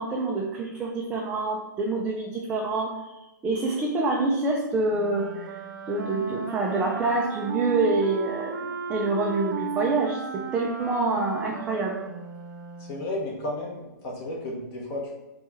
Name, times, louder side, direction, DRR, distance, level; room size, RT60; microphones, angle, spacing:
voice 1, 0.0-5.6 5.9-12.0, right 3 dB, 10° right, -2 dB, 0.4 m, -27 dB
Wind instrument woodwind instrument, 4.9-13.1, right 5 dB, 80° right, 0.5 m, -34 dB
voice 2, 12.8-15.1, left 1 dB, 30° left, -2 dB, 1.1 m, -33 dB
4.6 x 2.3 x 4.2 m, 0.99 s
hypercardioid pair, 155°, 10 cm